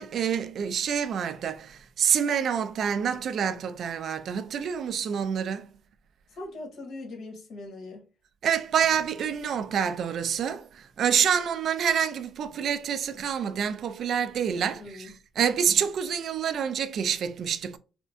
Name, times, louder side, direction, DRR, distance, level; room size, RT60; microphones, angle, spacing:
voice 1, 0.0-5.7 8.4-17.8, right 8 dB, 65° right, 0.4 m, -27 dB
voice 2, 6.3-8.0 14.7-15.1, left 2 dB, 65° left, 1.5 m, -41 dB
4.4 x 2.2 x 2.5 m
cardioid pair, 90°, 0 cm